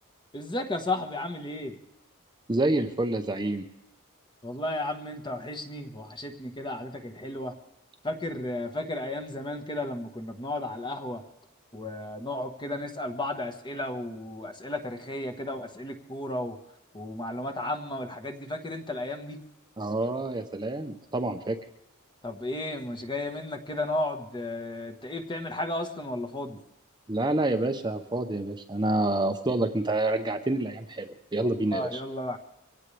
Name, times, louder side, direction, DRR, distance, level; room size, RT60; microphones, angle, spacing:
voice 1, 0.3-1.8 4.4-7.5 8.0-11.2 11.7-16.6 16.9-19.4 22.2-26.6 31.4-32.4, left 1 dB, 20° left, 6 dB, 1.4 m, -33 dB
voice 2, 2.5-3.6 19.8-21.6 27.1-32.0, right 2 dB, 20° right, 6 dB, 0.8 m, -28 dB
24.0 x 17.0 x 3.4 m, 0.89 s
head